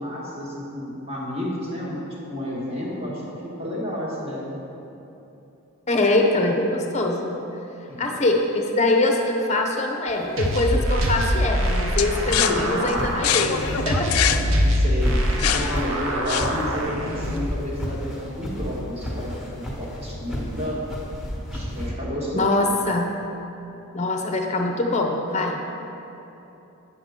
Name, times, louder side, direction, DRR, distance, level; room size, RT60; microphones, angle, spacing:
voice 1, 0.0-4.6 7.9-8.1 12.5-12.8 14.6-15.3 15.5-20.8 21.5-22.5, left 1 dB, 25° right, -5 dB, 1.6 m, -31 dB
voice 2, 5.9-7.4 8.0-14.1 15.4-15.7 22.3-23.1 23.9-25.6, left 2 dB, 30° left, 2 dB, 0.7 m, -23 dB
sound 1, 10.1-21.9, equal, 5° right, 1.5 m, -34 dB
sound 2, 10.4-17.4, equal, 60° right, 0.9 m, -24 dB
sound 3, 12.0-16.8, left 10 dB, 80° left, 0.4 m, -26 dB
8.6 x 7.8 x 3.7 m, 3.0 s
head